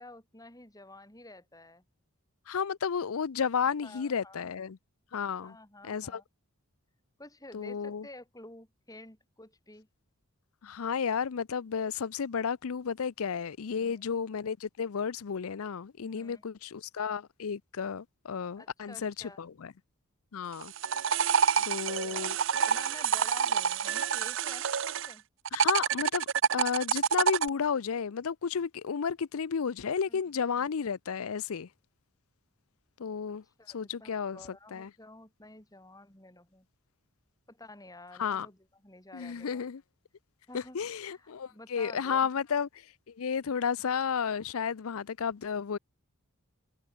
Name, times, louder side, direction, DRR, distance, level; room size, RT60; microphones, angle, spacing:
voice 1, 0.0-1.8 3.8-4.5 5.4-6.2 7.2-9.9 13.7-14.0 16.0-16.4 18.6-19.4 21.5-25.2 30.1-30.2 30.5-30.7 33.3-36.7 37.5-39.6 40.5-40.8 41.1-42.3, left 2 dB, 15° left, 5.6 m, -51 dB
voice 2, 2.5-4.8 5.1-5.6 5.8-6.2 7.5-8.1 10.6-19.7 20.3-20.7 21.6-22.4 25.5-26.3 26.5-31.7 33.0-33.4 33.7-34.4 34.7-34.9 38.2-38.5 39.1-39.8 40.5-42.7 43.2-45.8, left 6 dB, 70° left, 0.5 m, -32 dB
sound 1, 20.5-25.1 25.5-27.5, right 7 dB, 60° right, 0.7 m, -27 dB
head